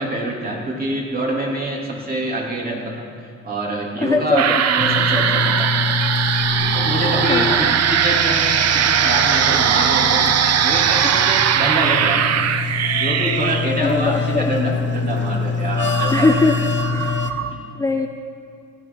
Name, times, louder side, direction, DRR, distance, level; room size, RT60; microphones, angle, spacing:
voice 1, 0.0-3.1 3.4-5.8 6.7-8.5 8.7-12.5 12.9-16.3 17.0-17.1 17.5-17.6, right 1 dB, 30° right, -3 dB, 3.2 m, -25 dB
voice 2, 4.0-4.6 7.3-7.7 13.8-14.5 16.1-16.6 16.8-17.3 17.7-18.1, left 3 dB, 10° left, 4 dB, 0.5 m, -21 dB
sound 1, 4.4-17.5, right 8 dB, 60° right, 0.7 m, -20 dB
sound 2, 4.8-17.3, left 5 dB, 40° left, 1.0 m, -25 dB
17.0 x 11.5 x 4.0 m, 2.4 s
cardioid pair, 90°, 30 cm